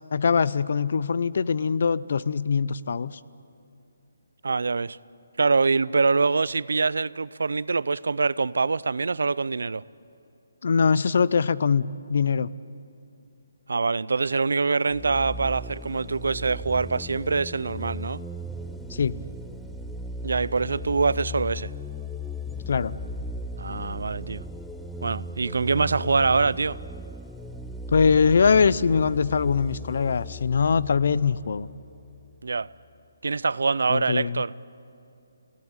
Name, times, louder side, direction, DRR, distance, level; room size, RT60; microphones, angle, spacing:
voice 1, 0.1-3.2 10.6-12.5 18.9-19.1 22.7-23.0 27.9-31.7 33.9-34.4, left 5 dB, 55° left, 18 dB, 0.6 m, -22 dB
voice 2, 4.4-5.0 5.4-9.8 13.7-18.2 20.2-21.7 23.6-24.4 25.0-26.8 32.4-32.7 33.2-34.5, right 4 dB, 80° right, 20 dB, 0.5 m, -24 dB
sound 1, 14.9-32.3, left 1 dB, ahead, 0.5 m, -37 dB
28.5 x 17.5 x 9.7 m, 2.6 s
hypercardioid pair, 170°, 0 cm